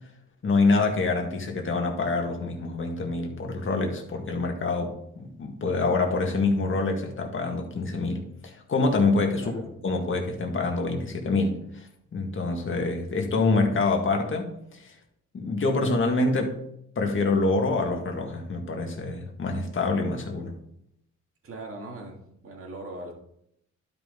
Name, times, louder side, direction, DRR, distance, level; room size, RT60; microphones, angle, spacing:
voice 1, 0.4-14.9 15.3-16.6 17.0-20.5, left 3 dB, 40° left, 2 dB, 1.9 m, -26 dB
voice 2, 21.4-23.1, right 2 dB, 45° right, 1 dB, 2.3 m, -40 dB
11.5 x 5.5 x 3.9 m, 0.76 s
cardioid pair, 90°, 30 cm